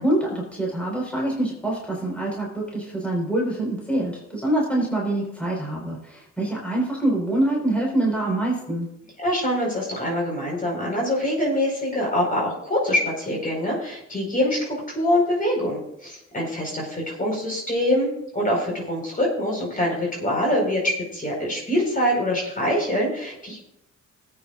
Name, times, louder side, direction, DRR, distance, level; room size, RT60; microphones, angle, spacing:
voice 1, 0.0-8.9, right 1 dB, 5° left, -3 dB, 4.7 m, -25 dB
voice 2, 9.2-23.6, left 1 dB, 30° left, -2 dB, 5.0 m, -24 dB
20.0 x 9.1 x 2.5 m, 0.78 s
cardioid pair, 90°, 30 cm